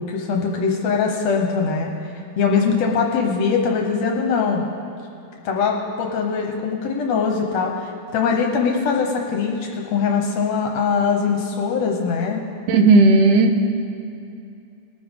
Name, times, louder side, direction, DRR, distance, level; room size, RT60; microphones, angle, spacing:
voice 1, 0.0-1.9 2.4-4.6 5.4-12.4, left 5 dB, 65° left, 1 dB, 1.9 m, -22 dB
voice 2, 12.7-13.6, right 3 dB, 80° right, 5 dB, 2.3 m, -13 dB
20.5 x 9.2 x 3.6 m, 2.6 s
omnidirectional pair, 3.6 m